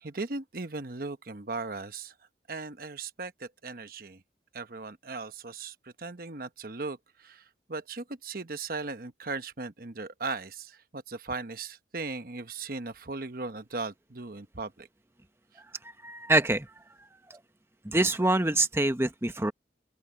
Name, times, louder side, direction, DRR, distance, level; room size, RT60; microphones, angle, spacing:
voice 1, 0.0-2.1 2.5-4.2 4.5-14.9, right 3 dB, 55° right, 1.1 m, -38 dB
voice 2, 16.0-16.7 17.3-17.4 17.8-19.5, right 2 dB, 15° right, 1.0 m, -25 dB
open air
head